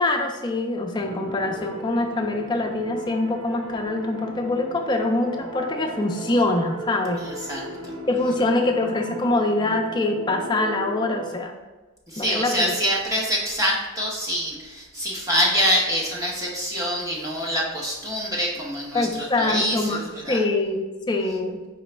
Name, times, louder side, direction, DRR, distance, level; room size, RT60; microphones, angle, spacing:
voice 1, 0.0-7.2 8.1-11.5 12.2-12.7 18.9-20.0 20.3-21.8, left 2 dB, 20° left, 3 dB, 0.3 m, -24 dB
sound 1, 0.9-11.3, right 1 dB, 70° right, 1.0 m, -36 dB
voice 2, 7.2-7.6 12.1-20.4, equal, 15° right, -3 dB, 0.8 m, -25 dB
4.9 x 3.0 x 3.2 m, 1.2 s
head